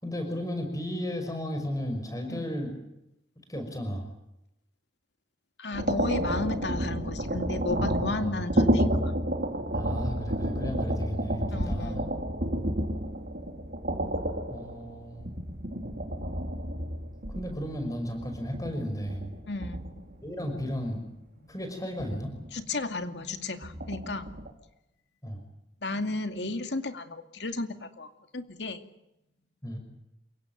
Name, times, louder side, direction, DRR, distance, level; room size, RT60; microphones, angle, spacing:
voice 1, 0.0-2.8 3.4-4.1 8.1-8.7 9.7-12.1 14.5-15.3 17.3-19.3 20.2-21.1 21.5-22.3 25.2-25.4 29.6-29.8, equal, 20° left, 6 dB, 5.9 m, -34 dB
voice 2, 5.6-9.1 11.5-12.0 19.5-20.1 20.6-20.7 22.5-24.4 25.8-28.8, left 2 dB, 70° left, 7 dB, 2.4 m, -34 dB
sound 1, 5.7-20.2 20.6-20.8 22.0-22.6 23.6-24.5, right 1 dB, 55° right, 3.8 m, -30 dB
28.5 x 17.0 x 9.3 m, 0.88 s
head